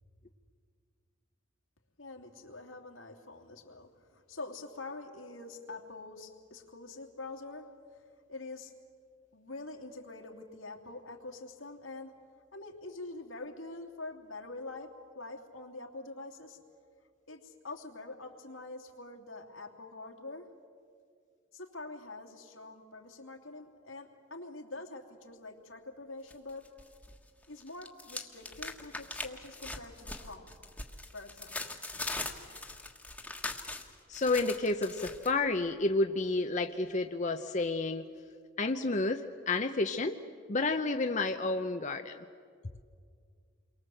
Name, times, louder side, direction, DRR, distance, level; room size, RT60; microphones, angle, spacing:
voice 1, 2.0-7.7 7.9-8.7 9.3-12.1 12.5-14.9 15.1-16.6 17.3-20.5 21.5-26.7 27.5-30.6 31.1-31.7, left 2 dB, 85° left, 2 dB, 3.0 m, -45 dB
sound 1, 26.3-27.2 27.4-35.3, left 2 dB, 5° left, 1.5 m, -41 dB
voice 2, 34.1-38.0 38.6-40.2 40.5-42.2, left 3 dB, 35° left, 6 dB, 0.8 m, -30 dB
29.5 x 23.0 x 7.9 m, 2.2 s
head